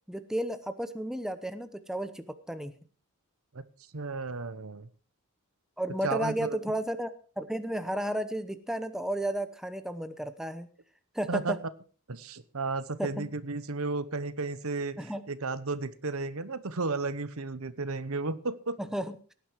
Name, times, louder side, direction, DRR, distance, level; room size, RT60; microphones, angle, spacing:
voice 1, 0.1-2.7 5.8-7.1 7.4-10.7 11.1-11.6 13.0-13.3 15.0-15.2 18.8-19.3, right 1 dB, ahead, 10 dB, 0.9 m, -33 dB
voice 2, 3.9-4.9 6.0-6.6 11.3-11.5 12.1-15.0 15.3-18.8, right 3 dB, 70° right, 15 dB, 1.0 m, -33 dB
18.0 x 10.0 x 4.7 m, 0.40 s
head